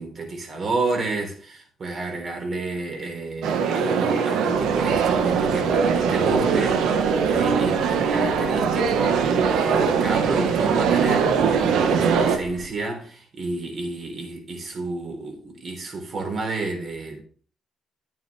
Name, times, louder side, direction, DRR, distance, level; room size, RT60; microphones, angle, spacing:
voice 1, 0.0-17.2, right 3 dB, 45° right, 3.7 m, -30 dB
sound 1, 3.4-12.4, right 6 dB, 85° right, 1.2 m, -21 dB
sound 2, 4.5-12.7, right 1 dB, 10° right, 2.7 m, -41 dB
10.0 x 9.2 x 3.3 m
cardioid pair, 90°, 0 cm